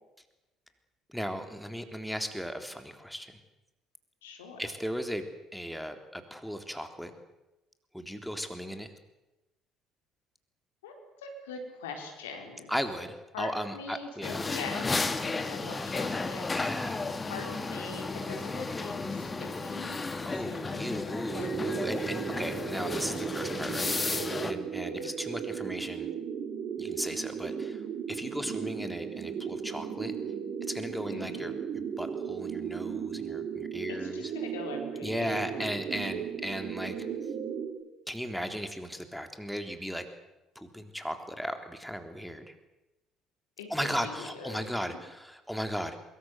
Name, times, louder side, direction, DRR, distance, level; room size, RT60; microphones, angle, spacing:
voice 1, 1.1-3.4 4.6-5.3 5.5-7.1 7.9-8.9 12.7-14.4 16.5-17.1 20.2-26.1 26.8-27.8 28.1-30.1 30.7-34.3 35.0-37.0 38.1-40.1 40.6-42.5 43.7-46.0, equal, ahead, 6 dB, 3.6 m, -36 dB
voice 2, 4.2-4.7 10.8-10.9 11.2-12.7 13.3-14.9 15.3-16.4 17.3-21.5 24.9-25.1 31.1-31.5 33.9-35.7 43.6-44.6, left 4 dB, 85° left, 3 dB, 4.4 m, -42 dB
sound 1, 14.2-24.5, left 3 dB, 25° left, 2.3 m, -33 dB
sound 2, 21.3-37.7, right 7 dB, 55° right, 5.9 m, -36 dB
24.0 x 22.0 x 8.1 m, 0.99 s
hypercardioid pair, 55°, 0 cm